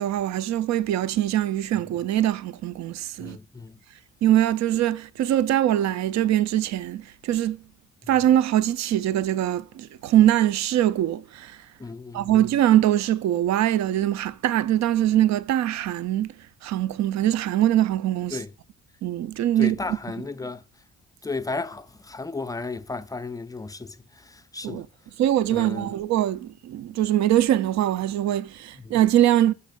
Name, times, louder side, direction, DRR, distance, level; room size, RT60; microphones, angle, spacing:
voice 1, 0.0-3.4 4.2-7.6 8.1-11.6 12.1-16.3 16.6-18.4 19.0-19.8 24.6-24.9 25.2-29.5, right 12 dB, 65° right, 0.5 m, -22 dB
voice 2, 3.2-3.8 11.8-12.4 18.3-18.5 19.6-20.6 21.2-24.8 25.5-26.0 28.8-28.9, left 3 dB, 10° left, 0.4 m, -34 dB
5.3 x 4.3 x 5.0 m
cardioid pair, 90°, 30 cm